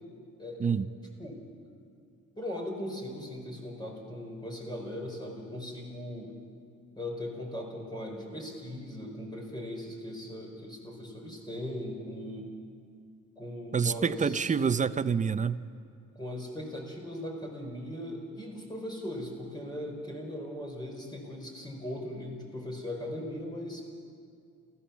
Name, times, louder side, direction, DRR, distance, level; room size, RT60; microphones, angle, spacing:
voice 1, 0.4-0.7 1.2-1.4 2.4-6.3 7.0-12.5 13.4-14.5 16.1-23.8, left 1 dB, 15° left, 0 dB, 5.0 m, -39 dB
voice 2, 13.7-15.6, right 6 dB, 25° right, 13 dB, 0.7 m, -27 dB
27.5 x 16.0 x 7.2 m, 2.3 s
cardioid pair, 115°, 30 cm